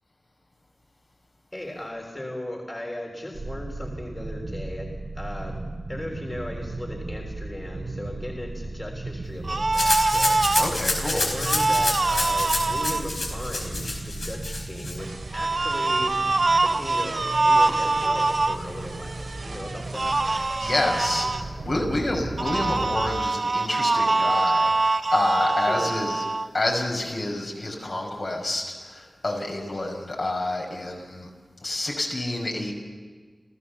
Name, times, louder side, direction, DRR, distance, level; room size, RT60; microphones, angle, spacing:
voice 1, 1.5-5.6 5.9-10.4 11.1-16.2 16.6-20.2 25.6-25.9, left 1 dB, 30° left, 0 dB, 3.5 m, -37 dB
sound 1, 3.3-23.1, right 2 dB, 80° right, 2.9 m, -35 dB
sound 2, 9.4-10.7 11.4-13.0 15.3-18.6 19.9-21.4 22.4-26.5, right 3 dB, 60° right, 0.8 m, -24 dB
Rattle (instrument), 9.7-15.0, left 2 dB, 85° left, 5.1 m, -28 dB
voice 2, 10.6-11.3 20.5-26.2 26.5-31.3 31.6-32.7, left 2 dB, 65° left, 0 dB, 5.7 m, -28 dB
28.5 x 15.0 x 7.0 m, 1.5 s
wide cardioid pair, 50°, 0 cm